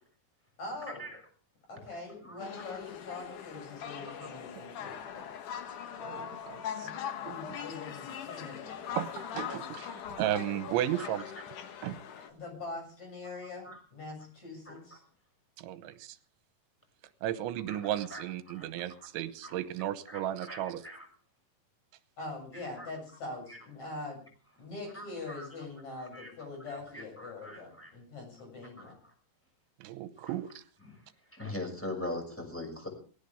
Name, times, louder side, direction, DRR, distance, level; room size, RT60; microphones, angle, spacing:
voice 1, 0.6-1.1 1.7-5.3 6.8-6.9 7.2-9.0 12.3-15.0 22.2-24.2 24.6-28.9, left 3 dB, 35° left, 8.6 m, -43 dB
sound 1, 2.4-12.3, left 8 dB, 65° left, 2.1 m, -41 dB
voice 2, 6.0-6.9 7.2-7.6 9.0-11.3 11.8-12.0 15.6-16.2 17.2-20.9 29.8-30.6, right 12 dB, 85° right, 3.3 m, -35 dB
voice 3, 18.1-18.8 19.4-19.5 20.1-20.2 20.5-21.1 22.8-22.9 23.5-23.6 24.9-25.5 25.9-26.3 26.9-27.9 28.8-28.9 30.2-30.3 30.8-30.9 31.3-32.9, left 1 dB, 5° left, 6.0 m, -41 dB
19.5 x 16.0 x 3.6 m
omnidirectional pair, 5.4 m